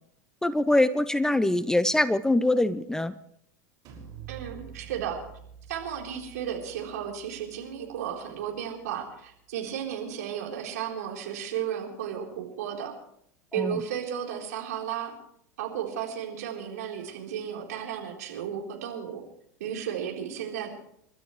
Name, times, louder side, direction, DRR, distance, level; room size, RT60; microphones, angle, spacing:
voice 1, 0.4-3.1 13.5-13.8, left 1 dB, 5° left, 16 dB, 0.6 m, -23 dB
sound 1, 3.8-9.5, right 9 dB, 45° right, 5.6 m, -48 dB
voice 2, 4.3-5.2 5.7-12.9 13.5-15.1 15.6-19.2 19.6-20.7, right 9 dB, 65° right, 0 dB, 3.8 m, -34 dB
29.5 x 12.5 x 3.2 m, 0.71 s
figure-of-eight pair, 85°, 9 cm